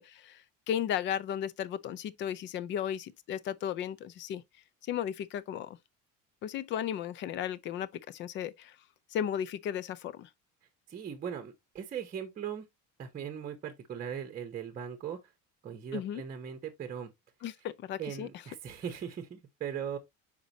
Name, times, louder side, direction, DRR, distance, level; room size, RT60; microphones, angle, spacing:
voice 1, 0.0-4.4 4.9-5.8 6.4-8.8 9.1-10.3 15.9-16.2 17.4-18.3, left 9 dB, 35° left, 0.4 m, -35 dB
voice 2, 10.9-12.6 13.0-15.2 15.6-17.1 18.0-20.0, right 8 dB, 25° right, 0.9 m, -39 dB
6.6 x 5.1 x 2.8 m
cardioid pair, 180°, 34 cm